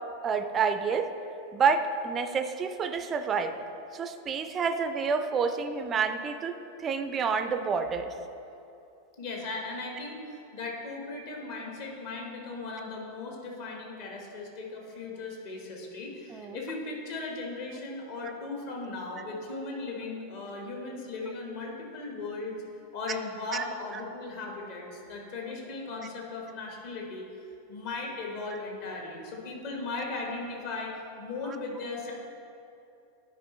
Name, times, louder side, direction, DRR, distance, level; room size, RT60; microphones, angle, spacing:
voice 1, 0.2-1.1 1.5-3.6 3.9-8.1 16.3-16.6 23.5-23.6, right 5 dB, 25° right, 9 dB, 0.4 m, -28 dB
voice 2, 9.2-22.6 22.9-27.3 27.7-32.1, left 3 dB, 50° left, -1 dB, 1.4 m, -37 dB
10.5 x 5.1 x 3.2 m, 2.7 s
figure-of-eight pair, 90°, 0 cm